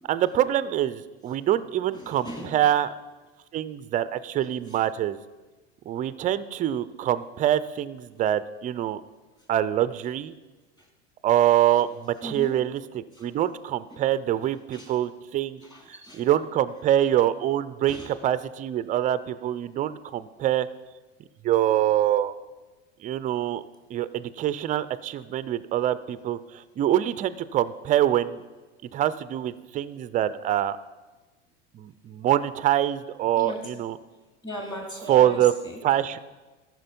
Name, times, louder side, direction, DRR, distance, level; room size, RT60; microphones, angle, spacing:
voice 1, 0.1-2.9 3.5-5.2 5.9-9.0 9.5-10.3 11.2-15.6 16.1-20.7 21.4-22.3 23.0-23.6 23.9-28.4 28.9-30.8 31.7-34.0 35.1-35.5 35.8-36.2, right 12 dB, 25° right, 15 dB, 0.3 m, -25 dB
voice 2, 1.9-2.6 12.2-12.6 13.1-13.3 13.9-14.0 14.7-14.9 15.6-16.2 17.9-18.1 33.4-33.7 34.4-35.8, equal, 10° left, 1 dB, 2.4 m, -38 dB
13.5 x 6.3 x 5.2 m, 1.2 s
supercardioid pair, 120°, 34 cm